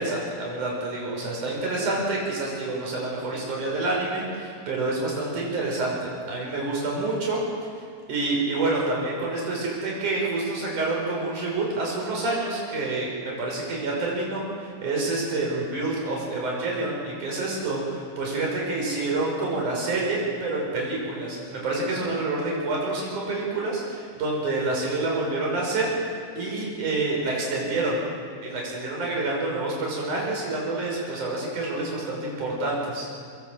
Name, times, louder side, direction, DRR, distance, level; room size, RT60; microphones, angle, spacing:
voice 1, 0.0-7.4 7.7-7.8 8.1-28.0 28.4-33.2, right 2 dB, 80° right, -2 dB, 7.1 m, -28 dB
24.0 x 22.0 x 8.3 m, 2.1 s
omnidirectional pair, 3.5 m